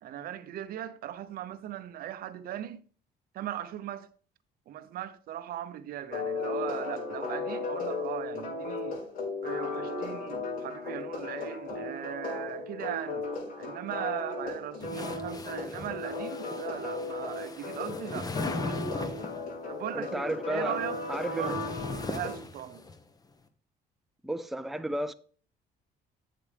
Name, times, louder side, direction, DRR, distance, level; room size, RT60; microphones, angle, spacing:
voice 1, 0.0-2.8 3.3-4.1 4.7-9.0 9.4-13.3 13.6-19.2 19.7-21.0 21.4-21.7 22.0-22.8, right 11 dB, 60° right, 0.7 m, -39 dB
sound 1, 6.1-22.4, left 3 dB, 60° left, 5.0 m, -36 dB
sound 2, 14.8-19.5 20.5-23.0, left 3 dB, 20° left, 1.0 m, -39 dB
voice 2, 19.9-20.8 21.1-21.5 24.2-25.1, right 1 dB, ahead, 0.5 m, -33 dB
8.3 x 7.7 x 3.4 m
cardioid pair, 110°, 17 cm